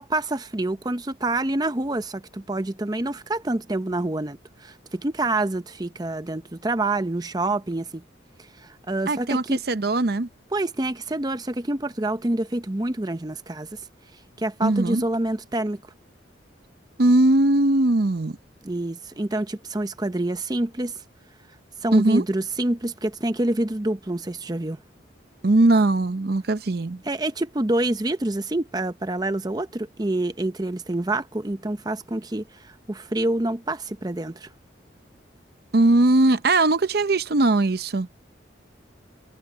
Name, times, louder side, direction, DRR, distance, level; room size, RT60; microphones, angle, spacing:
voice 1, 0.0-8.0 8.6-9.6 10.5-13.8 14.4-15.8 18.6-20.9 21.8-24.8 27.0-34.5, right 2 dB, 20° right, 0.7 m, -27 dB
voice 2, 9.1-10.3 14.6-15.0 17.0-18.4 21.9-22.2 25.4-27.0 35.7-38.2, right 2 dB, 55° right, 0.7 m, -20 dB
head